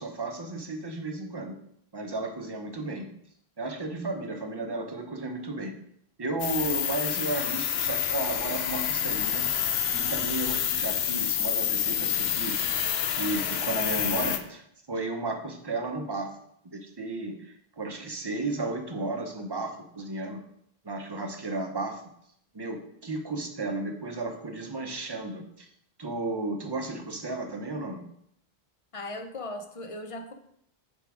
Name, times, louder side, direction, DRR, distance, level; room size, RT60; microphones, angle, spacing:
voice 1, 0.0-1.6 1.9-3.1 3.6-5.7 6.2-12.6 13.1-14.6 14.9-16.3 16.6-20.4 20.8-22.0 22.5-25.7 26.0-28.0, right 2 dB, 30° right, 4 dB, 0.7 m, -34 dB
sound 1, 6.4-14.4, left 9 dB, 80° left, 0.8 m, -28 dB
voice 2, 28.9-30.3, left 2 dB, 40° left, 6 dB, 0.6 m, -38 dB
6.6 x 3.6 x 4.9 m, 0.70 s
omnidirectional pair, 1.1 m